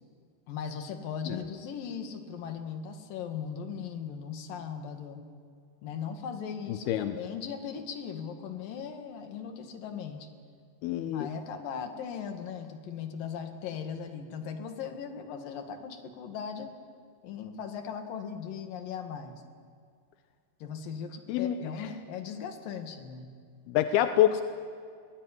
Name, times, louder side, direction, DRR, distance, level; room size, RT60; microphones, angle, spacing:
voice 1, 0.5-5.2 5.8-10.3 11.1-16.7 17.2-19.4 20.6-23.3, left 7 dB, 55° left, 5 dB, 3.1 m, -38 dB
voice 2, 6.7-7.2 10.8-11.3 21.3-21.6 23.7-24.4, left 12 dB, 80° left, 8 dB, 2.3 m, -26 dB
23.0 x 18.5 x 9.9 m, 2.2 s
omnidirectional pair, 5.4 m